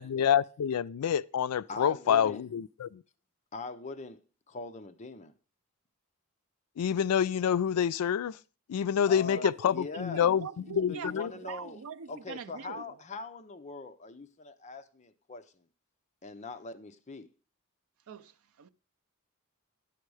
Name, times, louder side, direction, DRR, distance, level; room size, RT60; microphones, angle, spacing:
voice 1, 0.0-3.0 6.8-8.4 8.7-11.3, left 8 dB, 85° left, 0.4 m, -27 dB
voice 2, 1.7-2.5 3.5-5.3 9.1-10.3 10.9-11.8 12.1-15.6 16.2-17.3, left 3 dB, 30° left, 0.6 m, -42 dB
voice 3, 9.3-13.0 18.1-18.7, right 6 dB, 70° right, 0.5 m, -44 dB
10.5 x 6.6 x 4.7 m
head